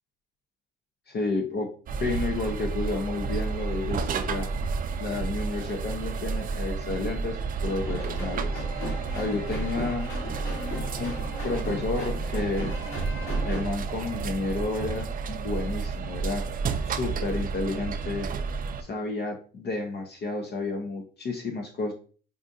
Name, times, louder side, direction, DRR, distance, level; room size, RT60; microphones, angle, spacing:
voice 1, 1.1-1.7 2.0-4.5 5.0-8.6 9.1-10.1 11.0-12.7 13.4-16.4 16.8-18.3 18.8-21.9, left 3 dB, 55° left, 3 dB, 0.7 m, -31 dB
sound 1, 1.9-18.8, right 4 dB, 45° right, 0.4 m, -31 dB
sound 2, 7.7-13.6, left 1 dB, 80° left, 1.8 m, -37 dB
5.0 x 2.4 x 2.6 m, 0.40 s
cardioid pair, 90°, 20 cm